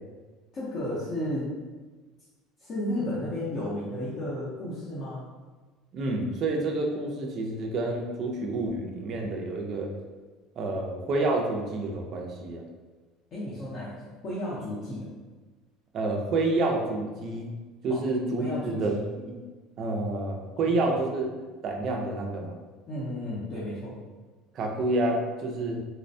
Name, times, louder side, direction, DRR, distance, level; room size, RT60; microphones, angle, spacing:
voice 1, 0.5-1.5 2.6-5.2 13.3-14.0 14.2-15.1 17.9-18.0 18.4-19.0 20.8-21.0 22.9-24.0, left 1 dB, 30° left, -8 dB, 0.6 m, -33 dB
voice 2, 5.9-9.9 10.6-12.6 15.9-17.6 17.8-18.9 19.3-19.4 19.8-21.3 21.6-22.5 24.5-25.8, right 2 dB, 30° right, 1 dB, 0.4 m, -28 dB
4.1 x 2.1 x 2.6 m, 1.3 s
cardioid pair, 180°, 0 cm